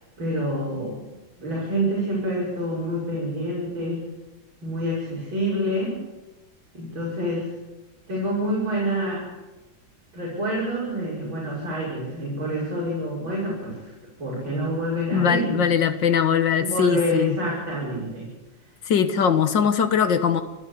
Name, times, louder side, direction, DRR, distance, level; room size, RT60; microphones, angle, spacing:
voice 1, 0.2-1.0 1.4-4.0 4.6-5.9 6.7-7.5 8.1-9.2 10.1-13.9 14.2-15.7 16.6-18.3, equal, 65° right, -6 dB, 6.8 m, -27 dB
voice 2, 15.1-17.4 18.9-20.4, left 7 dB, 65° left, 10 dB, 1.9 m, -21 dB
29.0 x 12.5 x 8.5 m, 1.1 s
omnidirectional pair, 2.3 m